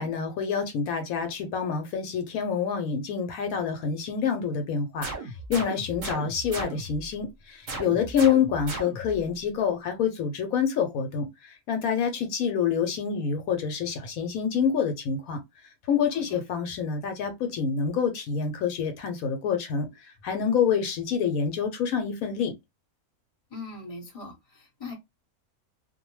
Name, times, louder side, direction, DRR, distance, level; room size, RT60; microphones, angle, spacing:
voice 1, 0.0-5.1 5.5-15.4 15.9-19.9 20.2-22.5, left 7 dB, 75° left, 1.0 m, -27 dB
sound 1, 5.0-7.1 7.7-9.2, right 2 dB, 40° right, 0.8 m, -36 dB
voice 2, 23.5-24.9, left 3 dB, 25° left, 1.0 m, -40 dB
2.5 x 2.1 x 3.0 m
omnidirectional pair, 1.5 m